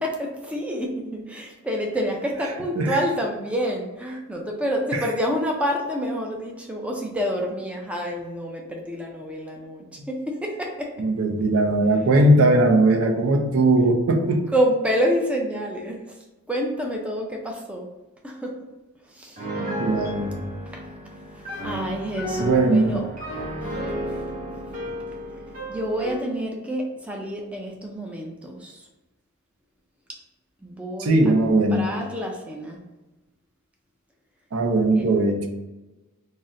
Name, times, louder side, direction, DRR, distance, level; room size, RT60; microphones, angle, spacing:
voice 1, 0.0-10.9 14.5-16.1 16.5-17.9 18.2-18.5 19.1-19.5 20.7-20.8 21.3-23.0 24.1-24.2 25.7-28.8 30.6-31.2 31.7-32.8 35.0-35.1, equal, 5° right, 0 dB, 0.4 m, -28 dB
voice 2, 11.0-14.4 19.8-20.3 22.4-23.0 31.0-31.8 34.5-35.5, right 2 dB, 70° right, 4 dB, 0.5 m, -19 dB
Piano, 19.4-26.3, equal, 40° right, 1.2 m, -32 dB
4.0 x 2.1 x 3.6 m, 1.1 s
head